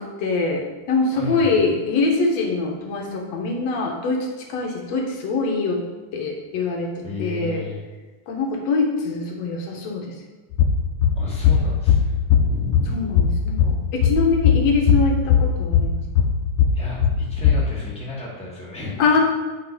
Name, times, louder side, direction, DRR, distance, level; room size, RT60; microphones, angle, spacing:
voice 1, 0.0-5.8 6.1-7.6 8.3-10.1 12.9-16.0 19.0-19.2, left 3 dB, 60° left, 1 dB, 2.1 m, -23 dB
voice 2, 1.1-1.6 7.0-7.8 11.1-13.1 16.7-19.2, left 2 dB, ahead, -6 dB, 1.8 m, -33 dB
sound 1, 10.5-17.6, left 7 dB, 75° left, 2.1 m, -19 dB
8.5 x 5.8 x 5.1 m, 1.2 s
omnidirectional pair, 3.8 m